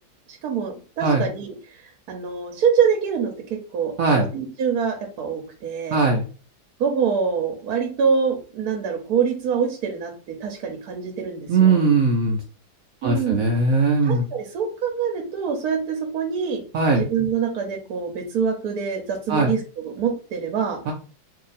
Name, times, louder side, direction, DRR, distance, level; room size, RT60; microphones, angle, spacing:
voice 1, 0.3-6.0 6.8-10.1 10.4-11.8 13.0-13.4 14.0-16.6 17.0-20.8, right 6 dB, 65° right, 3 dB, 1.1 m, -25 dB
voice 2, 5.9-6.3 11.5-12.4 13.0-14.2 16.7-17.1 19.3-19.5 20.9-21.0, right 3 dB, 80° right, 1 dB, 0.7 m, -19 dB
2.8 x 2.7 x 3.9 m, 0.36 s
omnidirectional pair, 2.1 m